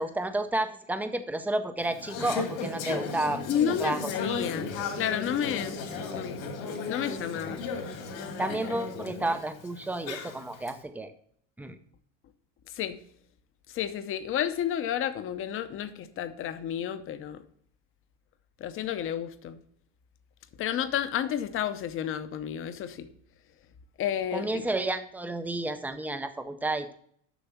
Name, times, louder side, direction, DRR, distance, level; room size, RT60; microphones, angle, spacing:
voice 1, 0.0-3.4 3.7-4.3 8.4-11.1 11.6-11.8 24.3-26.9, right 2 dB, 5° right, 9 dB, 0.5 m, -31 dB
Conversation / Chatter, 1.8-10.7, left 4 dB, 75° left, 2.3 m, -35 dB
voice 2, 3.5-5.8 6.1-6.4 6.9-7.6 12.7-13.0 13.7-17.4 18.6-19.6 20.6-23.1 24.0-24.6, left 9 dB, 35° left, 11 dB, 0.7 m, -31 dB
7.1 x 6.0 x 5.6 m, 0.64 s
supercardioid pair, 130°, 38 cm